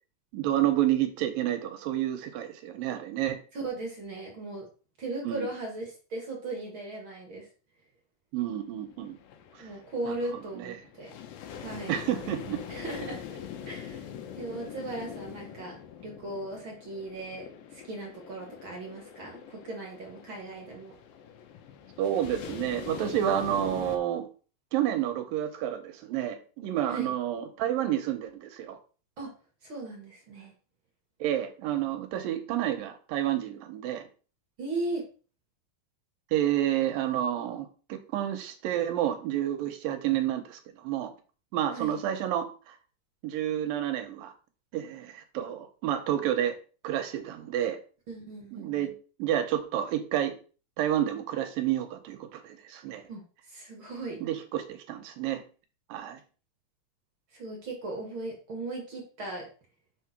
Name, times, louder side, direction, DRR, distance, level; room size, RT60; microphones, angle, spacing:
voice 1, 0.3-3.4 5.2-5.5 8.3-9.2 9.6-9.7 10.0-10.2 10.5-10.7 11.9-12.6 22.0-24.3 24.7-28.8 31.2-34.0 36.3-41.1 41.5-42.8 43.2-44.3 44.7-46.6 46.8-47.8 48.5-48.9 49.2-50.4 50.8-53.0 54.2-55.4 55.9-56.2, right 11 dB, 80° right, 7 dB, 2.5 m, -29 dB
voice 2, 3.5-4.6 5.0-7.5 9.6-11.1 11.6-11.9 12.7-13.2 13.7-14.1 14.4-15.8 16.0-21.0 26.9-27.1 29.2-29.3 29.6-30.5 34.6-35.1 41.7-42.0 48.1-48.9 53.1-53.2 53.5-54.2 57.3-59.5, right 2 dB, 45° right, -1 dB, 2.0 m, -37 dB
sound 1, 8.5-24.0, left 8 dB, 85° left, 2.6 m, -43 dB
6.4 x 3.7 x 5.9 m, 0.37 s
omnidirectional pair, 4.1 m